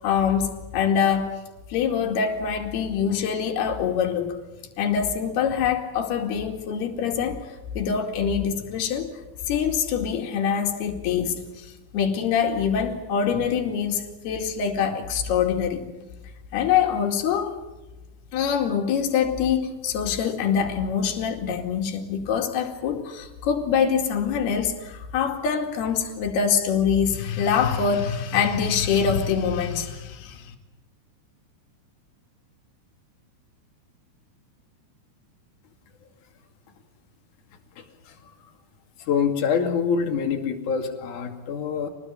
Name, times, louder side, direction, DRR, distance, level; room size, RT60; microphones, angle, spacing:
voice 1, 0.0-1.4 1.7-4.4 4.8-9.1 9.5-16.1 16.5-17.6 18.3-30.5, left 7 dB, 70° left, 3 dB, 4.2 m, -24 dB
voice 2, 37.8-38.3 39.0-41.9, left 6 dB, 50° left, 3 dB, 3.5 m, -26 dB
26.0 x 19.5 x 8.8 m, 1.1 s
omnidirectional pair, 4.9 m